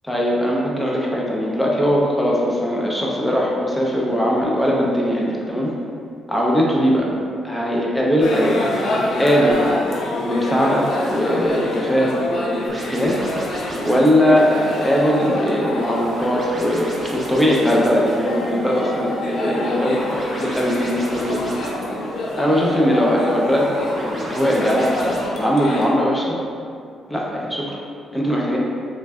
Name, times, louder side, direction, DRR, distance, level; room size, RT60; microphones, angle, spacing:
voice 1, 0.1-5.7 6.3-7.1 7.4-9.6 10.2-13.2 13.8-20.0 20.4-21.4 22.4-26.4 27.1-27.8 28.1-28.6, equal, 10° left, -3 dB, 0.5 m, -20 dB
sound 1, 8.2-25.9, left 1 dB, 60° left, 0.4 m, -28 dB
sound 2, 12.7-25.3, right 1 dB, 40° right, 0.6 m, -33 dB
3.1 x 2.5 x 2.3 m, 2.3 s
cardioid pair, 90°, 0 cm